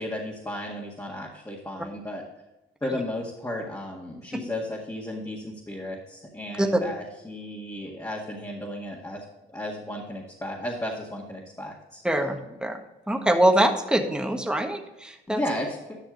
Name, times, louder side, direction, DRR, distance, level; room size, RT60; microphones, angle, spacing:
voice 1, 0.0-2.2 2.8-9.2 9.5-12.6 15.3-16.0, left 1 dB, 15° left, -3 dB, 1.9 m, -34 dB
voice 2, 12.0-12.8 13.1-15.4, right 1 dB, 5° right, 4 dB, 1.4 m, -23 dB
11.0 x 6.1 x 3.8 m, 0.99 s
cardioid pair, 90°, 20 cm